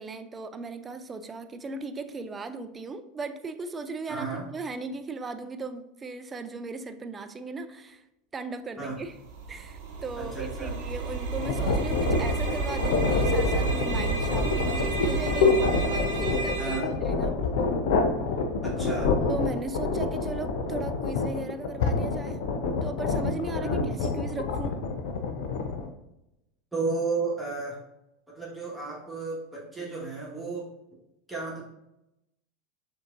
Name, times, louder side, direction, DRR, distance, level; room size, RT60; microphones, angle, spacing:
voice 1, 0.0-8.0 8.3-9.2 9.5-17.4 19.3-22.5 22.8-24.8, right 3 dB, 25° right, 10 dB, 0.4 m, -37 dB
voice 2, 4.1-4.5 8.8-9.0 10.2-10.7 16.6-16.9 18.6-19.1 23.6-23.9 26.7-27.8 28.3-30.7 31.3-31.6, right 4 dB, 10° right, -5 dB, 1.4 m, -33 dB
sound 1, 9.0-16.8, right 4 dB, 60° right, 0.8 m, -30 dB
sound 2, 11.4-25.9, left 4 dB, 65° left, 0.5 m, -27 dB
6.3 x 2.8 x 2.5 m, 0.88 s
hypercardioid pair, 80°, 0 cm